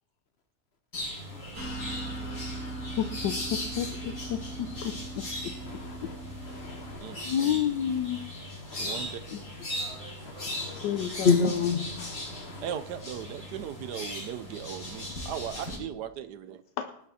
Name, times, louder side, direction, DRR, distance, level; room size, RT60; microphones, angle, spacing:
sound 1, 0.9-15.8, left 1 dB, 65° left, 5.8 m, -39 dB
sound 2, 1.5-6.9, right 2 dB, 60° right, 5.8 m, -39 dB
voice 1, 3.0-5.3 6.0-6.1 7.2-8.2 9.3-9.4 10.8-11.7 16.8-17.0, left 9 dB, 80° left, 1.3 m, -30 dB
voice 2, 5.6-6.2 6.4-7.3 8.7-9.1 10.2-12.8, left 5 dB, 50° left, 0.9 m, -30 dB
voice 3, 7.0-7.5 8.8-9.2 12.6-16.6, right 10 dB, 75° right, 1.2 m, -38 dB
20.0 x 8.8 x 4.2 m
omnidirectional pair, 1.9 m